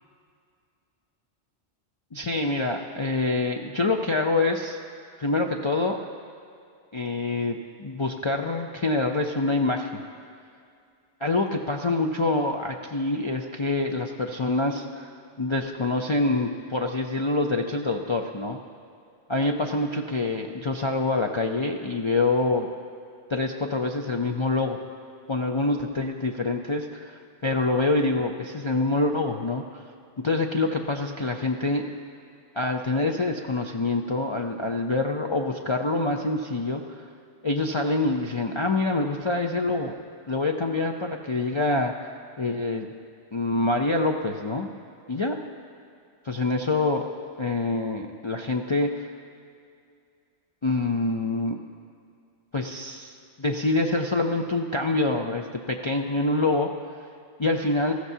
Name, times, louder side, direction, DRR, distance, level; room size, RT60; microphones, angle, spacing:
voice 1, 2.1-4.8 5.2-6.0 6.9-10.0 11.2-15.1 15.4-18.6 19.3-22.7 23.3-24.8 25.3-29.8 30.2-31.8 32.5-37.0 37.4-39.9 40.3-42.1 42.4-42.9 43.3-44.7 45.1-45.4 46.2-47.0 47.4-49.1 50.6-51.6 52.5-56.7 57.4-57.9, left 2 dB, 40° left, 1 dB, 0.4 m, -26 dB
18.5 x 14.5 x 2.7 m, 2.4 s
omnidirectional pair, 1.2 m